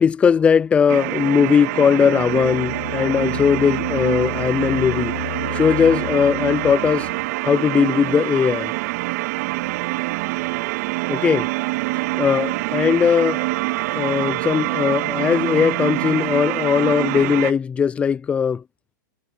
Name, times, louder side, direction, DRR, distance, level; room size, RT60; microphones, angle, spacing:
voice 1, 0.0-5.1 5.5-7.1 7.5-8.7 11.1-11.5 12.1-13.4 13.9-18.6, left 7 dB, 10° left, 0.4 m, -19 dB
sound 1, 0.9-17.5, right 20 dB, 50° right, 2.0 m, -25 dB
sound 2, 2.1-7.3, left 12 dB, 70° left, 0.7 m, -32 dB
supercardioid pair, 145°, 10 cm